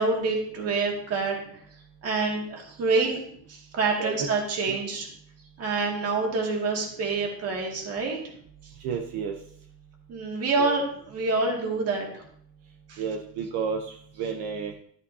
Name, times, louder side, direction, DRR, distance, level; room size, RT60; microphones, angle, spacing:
voice 1, 0.0-1.4 2.0-3.2 3.5-5.1 5.6-8.2 10.1-10.8 11.1-12.2 12.9-13.0, right 3 dB, 35° right, 1 dB, 2.2 m, -27 dB
voice 2, 8.8-9.3 10.6-10.8 13.0-14.8, right 6 dB, 70° right, 4 dB, 1.0 m, -31 dB
12.5 x 8.3 x 2.8 m, 0.64 s
cardioid pair, 180°, 40 cm